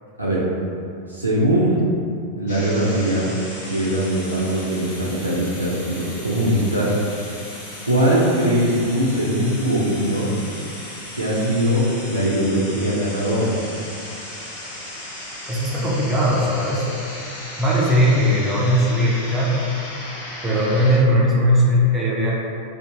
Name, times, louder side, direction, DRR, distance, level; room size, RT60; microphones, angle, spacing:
voice 1, 1.1-1.8 2.4-3.3 3.7-6.9 7.8-10.4 11.1-13.5, right 1 dB, 85° right, -7 dB, 0.4 m, -21 dB
sound 1, 2.5-21.0, left 1 dB, 55° left, 0.9 m, -36 dB
voice 2, 15.5-16.8 17.6-19.5 20.4-22.3, equal, 15° right, -6 dB, 0.6 m, -18 dB
2.6 x 2.4 x 3.8 m, 2.6 s
figure-of-eight pair, 90°, 0 cm